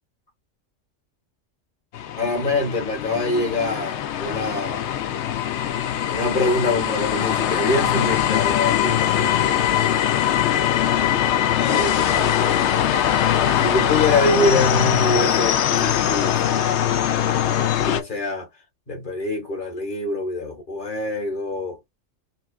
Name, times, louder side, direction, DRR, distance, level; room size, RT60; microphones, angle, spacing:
sound 1, 1.9-18.0, left 10 dB, 65° left, 0.8 m, -21 dB
voice 1, 2.2-4.9 6.1-9.9 11.6-12.6 13.6-16.6 17.8-18.5 18.9-21.8, left 2 dB, 40° left, 1.6 m, -25 dB
5.1 x 2.4 x 2.4 m
omnidirectional pair, 1.3 m